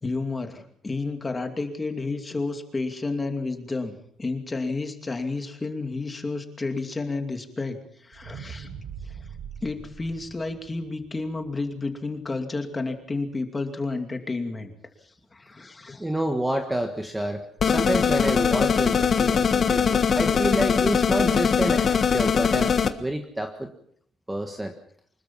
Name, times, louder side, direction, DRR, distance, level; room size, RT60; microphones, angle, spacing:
voice 1, 0.0-7.8 8.0-8.7 9.0-9.1 9.6-14.7 15.3-16.1 19.2-19.3, left 3 dB, 15° left, 6 dB, 2.6 m, -31 dB
sound 1, 8.1-12.4 12.9-13.0, right 6 dB, 85° right, 5.4 m, -42 dB
voice 2, 16.0-22.7 23.0-23.7 24.3-24.7, right 1 dB, 5° right, 5 dB, 1.5 m, -28 dB
sound 2, 17.6-22.9, left 6 dB, 35° left, 1.4 m, -21 dB
25.0 x 21.5 x 5.6 m, 0.62 s
cardioid pair, 170°, 0 cm